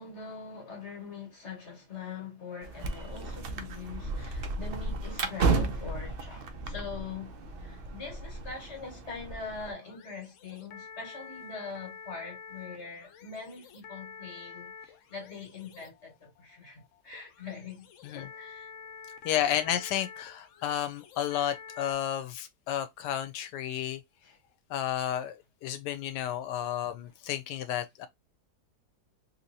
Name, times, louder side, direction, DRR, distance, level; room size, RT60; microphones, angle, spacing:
voice 1, 0.0-17.9 18.1-18.7 24.2-24.4, left 4 dB, 45° left, 1.7 m, -43 dB
sound 1, 2.6-9.7, right 3 dB, 75° right, 0.5 m, -33 dB
sound 2, 8.7-21.9, left 6 dB, 65° left, 0.8 m, -49 dB
voice 2, 19.2-24.0 24.7-28.1, left 11 dB, 90° left, 1.2 m, -32 dB
3.4 x 2.9 x 2.6 m
omnidirectional pair, 1.8 m